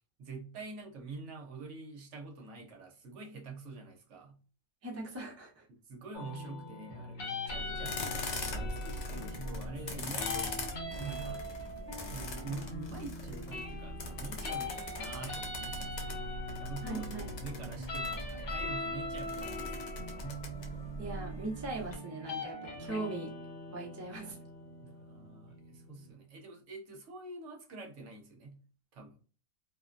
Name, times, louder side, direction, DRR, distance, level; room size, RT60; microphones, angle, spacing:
voice 1, 0.0-4.4 5.7-11.4 11.9-16.3 16.6-19.9 24.8-28.6 28.9-29.2, right 3 dB, 65° right, 2 dB, 0.9 m, -46 dB
voice 2, 4.8-5.6 16.8-17.3 21.0-23.3 23.7-24.4, right 2 dB, 25° right, -2 dB, 0.4 m, -40 dB
sound 1, 6.1-26.1, left 2 dB, 50° left, 1.0 m, -42 dB
sound 2, 7.5-21.9, left 1 dB, 70° left, 0.4 m, -41 dB
2.5 x 2.1 x 2.4 m, 0.38 s
omnidirectional pair, 1.4 m